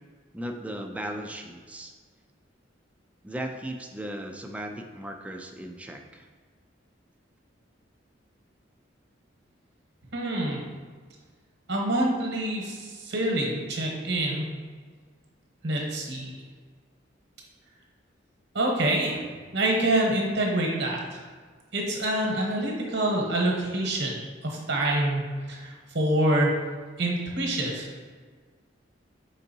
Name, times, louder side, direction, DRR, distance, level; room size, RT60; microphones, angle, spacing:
voice 1, 0.3-1.9 3.2-6.3, right 1 dB, 5° right, 3 dB, 0.3 m, -36 dB
voice 2, 10.1-10.6 11.7-14.5 15.6-16.3 18.5-19.2 19.5-21.2 21.7-24.1 24.4-26.5 27.0-27.9, right 1 dB, 65° right, -1 dB, 1.0 m, -26 dB
4.4 x 3.8 x 2.7 m, 1.5 s
head